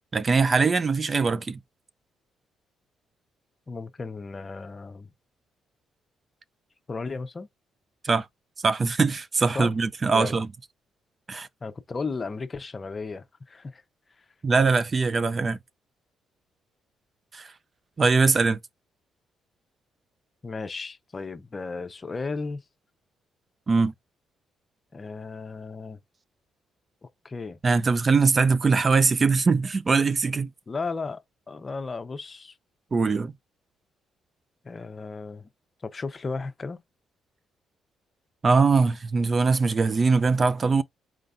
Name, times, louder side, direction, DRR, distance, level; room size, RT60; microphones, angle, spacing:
voice 1, 0.1-1.6 8.0-8.3 8.6-10.5 11.3-11.5 14.4-15.6 17.3-17.5 18.0-18.6 23.7-23.9 27.6-30.5 32.9-33.3 38.4-40.8, right 4 dB, 35° right, 0.4 m, -22 dB
voice 2, 3.7-5.1 6.9-7.5 9.5-9.7 10.0-10.4 11.6-13.8 20.4-22.6 24.9-26.0 27.2-27.6 30.7-31.2 31.5-32.6 34.6-35.5 35.8-36.8, left 4 dB, 30° left, 0.7 m, -34 dB
4.4 x 3.9 x 2.5 m
cardioid pair, 90°, 0 cm